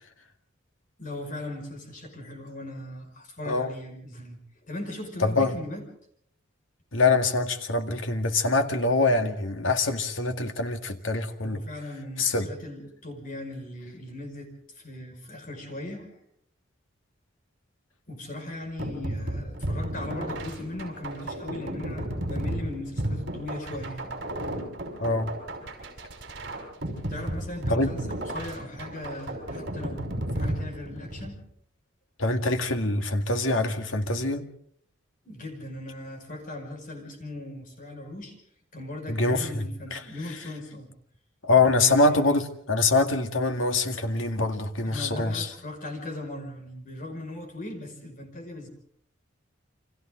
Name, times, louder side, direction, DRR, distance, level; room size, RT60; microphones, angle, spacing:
voice 1, 1.0-4.4 4.7-5.9 11.4-16.2 18.1-24.1 27.1-31.4 35.2-38.4 38.7-40.9 41.6-42.2 44.8-48.7, left 1 dB, 45° left, 5.7 m, -38 dB
voice 2, 5.2-5.5 6.9-11.6 12.2-12.5 25.0-25.3 27.7-27.9 32.2-34.5 39.1-39.6 39.9-40.0 41.4-45.5, left 3 dB, 85° left, 2.0 m, -24 dB
sound 1, 18.8-31.4, right 1 dB, 55° right, 5.5 m, -33 dB
29.5 x 25.0 x 3.9 m
head